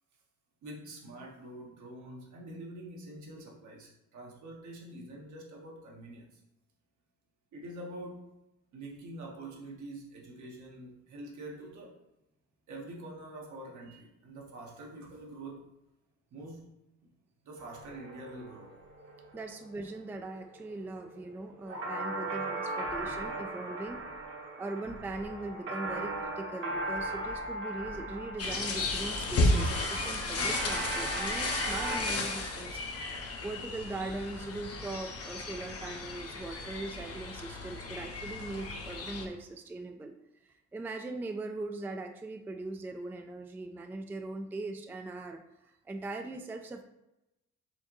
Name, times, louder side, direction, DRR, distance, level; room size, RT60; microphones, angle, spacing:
voice 1, 0.6-6.4 7.5-8.3 8.7-12.0 12.7-15.7 16.3-16.6 17.4-18.7, right 1 dB, 75° right, -1 dB, 1.2 m, -45 dB
sound 1, 17.6-32.0, right 2 dB, 45° right, 1.0 m, -38 dB
voice 2, 19.3-24.0 24.6-32.8 33.4-40.1 40.4-46.8, right 2 dB, 5° right, 5 dB, 0.3 m, -40 dB
sound 2, 28.4-39.3, left 2 dB, 50° left, 0.8 m, -34 dB
4.4 x 3.5 x 3.0 m, 0.90 s
cardioid pair, 90°, 30 cm